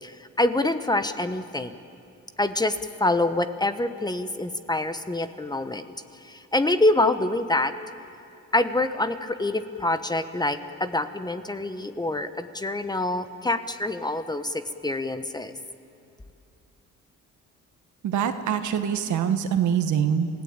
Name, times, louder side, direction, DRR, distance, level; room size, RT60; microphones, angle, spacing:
voice 1, 0.0-1.8 2.4-5.9 6.2-7.7 8.5-15.5, left 2 dB, 15° left, 10 dB, 1.0 m, -26 dB
voice 2, 18.0-20.3, right 8 dB, 75° right, 8 dB, 1.6 m, -24 dB
26.5 x 16.5 x 8.8 m, 2.6 s
cardioid pair, 90°, 30 cm